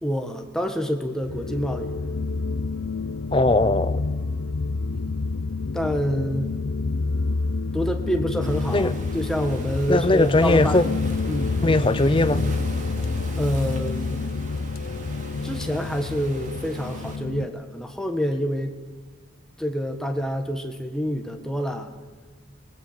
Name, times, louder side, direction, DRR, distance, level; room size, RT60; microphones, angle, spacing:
voice 1, 0.0-2.0 4.9-5.2 5.7-6.5 7.7-10.9 11.3-11.5 13.3-14.3 15.4-18.8 19.6-21.9, equal, 5° left, 1.4 m, -27 dB
sound 1, 1.2-17.5, left 3 dB, 85° left, 0.7 m, -28 dB
voice 2, 3.3-4.0 8.7-8.9 9.9-10.8 11.6-12.4, left 2 dB, 25° left, 0.6 m, -19 dB
Waves surf, 8.4-17.2, right 2 dB, 35° right, 2.5 m, -41 dB
22.0 x 19.5 x 7.4 m
head